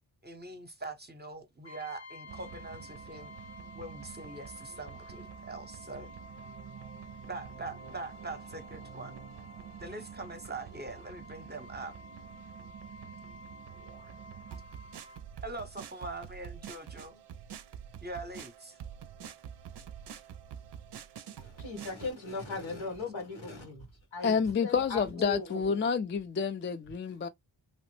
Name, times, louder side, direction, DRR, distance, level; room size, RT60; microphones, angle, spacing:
voice 1, 0.2-3.3 3.7-6.1 7.2-9.2 9.8-11.9 15.4-17.2 18.0-18.8, right 2 dB, 20° right, 0.8 m, -43 dB
Brass instrument, 1.6-15.3, left 2 dB, 70° left, 1.3 m, -52 dB
sound 1, 2.3-22.1, right 8 dB, 65° right, 0.5 m, -47 dB
voice 2, 21.4-23.9 24.1-25.8, left 3 dB, 90° left, 1.5 m, -38 dB
voice 3, 24.2-27.3, left 6 dB, 30° left, 0.4 m, -29 dB
3.0 x 2.0 x 3.1 m
wide cardioid pair, 65°, 45 cm